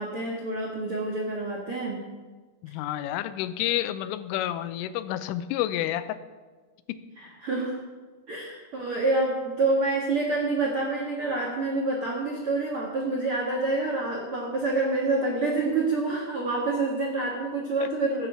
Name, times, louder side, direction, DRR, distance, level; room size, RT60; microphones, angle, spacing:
voice 1, 0.0-2.0 7.2-7.7 8.3-18.3, right 2 dB, 70° right, -2 dB, 1.3 m, -27 dB
voice 2, 2.6-6.2 6.9-7.0 17.8-17.9, left 13 dB, 85° left, 13 dB, 3.2 m, -29 dB
15.5 x 8.9 x 6.9 m, 1.4 s
omnidirectional pair, 5.7 m